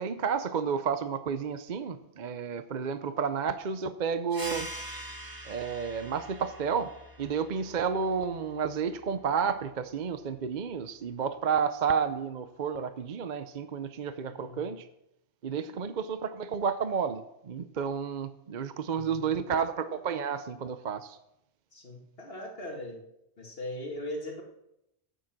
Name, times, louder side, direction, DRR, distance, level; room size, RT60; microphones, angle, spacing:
voice 1, 0.0-4.7 5.5-6.9 7.2-14.9 15.4-21.2, right 6 dB, 50° right, 11 dB, 0.8 m, -31 dB
sound 1, 4.3-9.5, right 1 dB, 20° right, 1.7 m, -44 dB
voice 2, 14.2-14.7 15.7-16.0 18.9-19.5 21.7-23.0 23.4-24.4, left 1 dB, 60° left, 0 dB, 2.3 m, -40 dB
13.0 x 9.2 x 6.0 m, 0.83 s
omnidirectional pair, 1.1 m